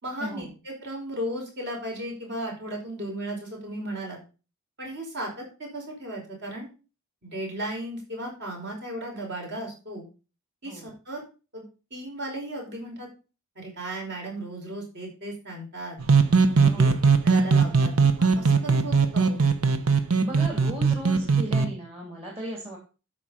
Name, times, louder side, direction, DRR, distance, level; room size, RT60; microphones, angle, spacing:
voice 1, 0.0-4.2 4.8-6.7 7.2-10.1 10.6-11.2 11.5-11.6 11.9-13.1 13.6-16.0 16.6-16.9 17.2-17.9 18.2-19.4, right 1 dB, 55° right, 0 dB, 5.3 m, -35 dB
sound 1, 16.0-21.7, right 5 dB, 80° right, 1.1 m, -20 dB
voice 2, 16.6-17.0 20.2-22.8, equal, 30° right, -1 dB, 2.7 m, -36 dB
12.5 x 5.1 x 5.6 m, 0.33 s
head